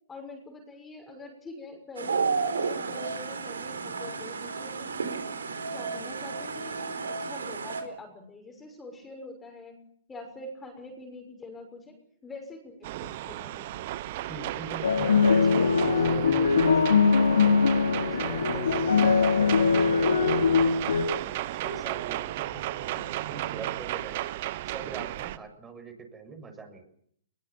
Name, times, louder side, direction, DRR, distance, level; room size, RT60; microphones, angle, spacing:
voice 1, 0.1-9.8 10.1-12.0 12.2-13.8 15.8-16.7, left 2 dB, 15° left, 4 dB, 6.4 m, -44 dB
sound 1, 2.0-7.8, right 5 dB, 85° right, 4.3 m, -32 dB
sound 2, 12.8-25.4, right 15 dB, 50° right, 1.1 m, -34 dB
voice 2, 14.2-16.8 17.3-24.3 24.6-26.8, right 4 dB, 15° right, 4 dB, 7.0 m, -43 dB
sound 3, 14.8-21.0, left 5 dB, 85° left, 3.1 m, -22 dB
22.0 x 20.0 x 8.8 m, 0.66 s
hypercardioid pair, 130°, 0 cm